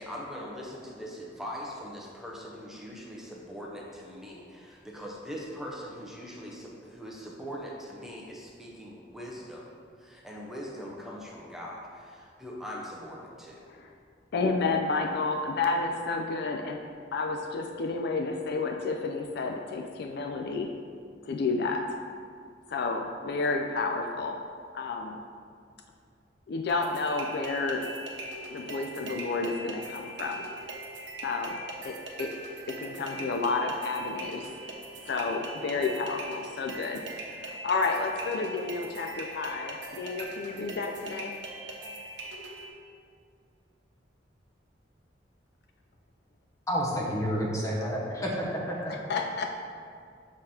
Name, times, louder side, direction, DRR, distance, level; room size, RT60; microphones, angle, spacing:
voice 1, 0.0-9.6 10.0-13.6, equal, ahead, -3 dB, 0.7 m, -41 dB
voice 2, 14.3-16.8 17.1-20.7 21.2-22.0 22.7-24.4 24.7-25.2 26.5-27.9 28.5-30.4 31.2-31.6 31.8-32.3 32.7-34.5 35.1-41.4 48.9-49.5, left 3 dB, 60° left, 4 dB, 0.4 m, -31 dB
sound 1, 26.7-42.7, right 1 dB, 75° right, 0.9 m, -41 dB
voice 3, 46.7-48.8 49.0-49.1, equal, 20° left, -4 dB, 1.0 m, -30 dB
6.4 x 3.8 x 4.3 m, 2.3 s
head